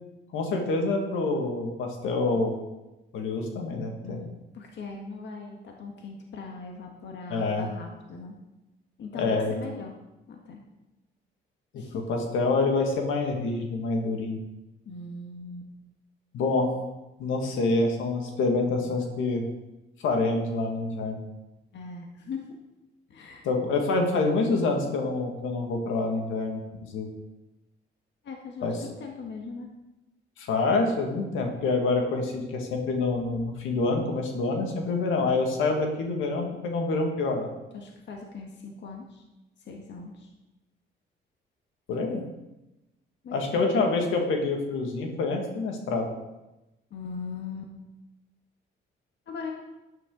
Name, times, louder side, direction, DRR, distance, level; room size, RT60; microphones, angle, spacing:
voice 1, 0.3-2.5 3.1-4.2 7.3-7.7 9.1-9.5 11.7-14.4 16.3-16.7 17.2-19.4 20.0-21.2 23.4-26.6 26.9-27.1 28.6-28.7 30.4-37.5 41.9-42.2 43.3-46.1, left 3 dB, 85° left, 2 dB, 2.1 m, -26 dB
voice 2, 4.0-8.4 9.0-10.0 10.3-10.6 11.8-12.1 14.9-15.7 21.7-22.6 23.1-23.5 28.2-29.7 37.7-39.2 39.6-40.3 43.2-44.0 46.9-47.7 49.3-49.5, left 4 dB, 65° left, 1 dB, 1.6 m, -40 dB
11.5 x 9.1 x 4.0 m, 0.99 s
cardioid pair, 90°, 20 cm